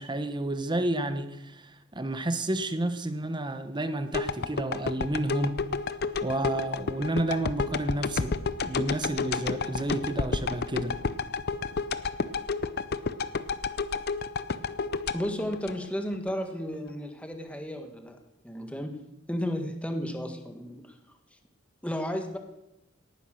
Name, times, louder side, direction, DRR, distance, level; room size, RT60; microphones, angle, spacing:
voice 1, 0.0-5.6 6.2-8.4 8.7-10.9, right 1 dB, 20° right, 10 dB, 1.1 m, -30 dB
sound 1, 4.1-16.3 16.7-16.8, left 4 dB, 50° left, 0.6 m, -31 dB
voice 2, 15.1-18.2 18.4-19.0 19.3-21.0 21.8-22.4, equal, 5° left, 5 dB, 1.6 m, -33 dB
18.0 x 9.9 x 6.6 m, 0.91 s
head